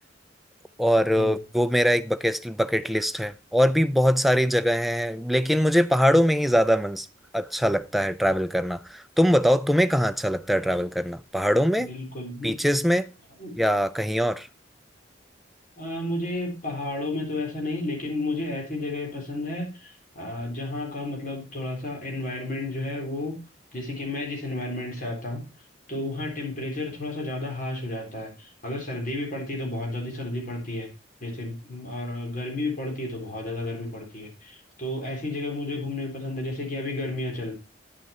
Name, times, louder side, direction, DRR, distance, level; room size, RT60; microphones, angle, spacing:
voice 1, 0.8-7.1 7.3-11.9 12.4-13.1 13.6-14.5, equal, ahead, 0.4 m, -22 dB
voice 2, 11.8-12.6 13.4-13.6 15.8-23.4 23.7-25.4 25.9-30.9 31.2-37.5, left 2 dB, 50° left, 3.8 m, -32 dB
10.5 x 6.5 x 4.3 m
head